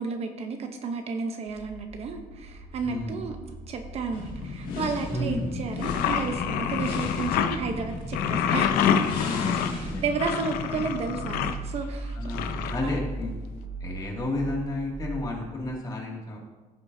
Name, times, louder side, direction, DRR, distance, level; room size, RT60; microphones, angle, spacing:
voice 1, 0.0-3.4 3.7-8.7 9.7-12.2 12.8-12.9, right 4 dB, 45° right, 5 dB, 0.8 m, -32 dB
sound 1, 1.5-15.7, right 3 dB, 65° right, 1.3 m, -40 dB
voice 2, 2.8-3.2 5.1-5.6 9.2-9.5 9.9-10.0 10.7-10.8 12.2-13.3 13.8-16.4, left 2 dB, 25° left, -2 dB, 2.3 m, -32 dB
sound 2, 4.1-11.7, left 4 dB, 75° left, 2.1 m, -35 dB
sound 3, 5.8-7.6 8.1-11.6 12.3-13.3, left 8 dB, 90° left, 0.7 m, -27 dB
15.0 x 7.2 x 2.7 m, 1.2 s
cardioid pair, 145°, 15 cm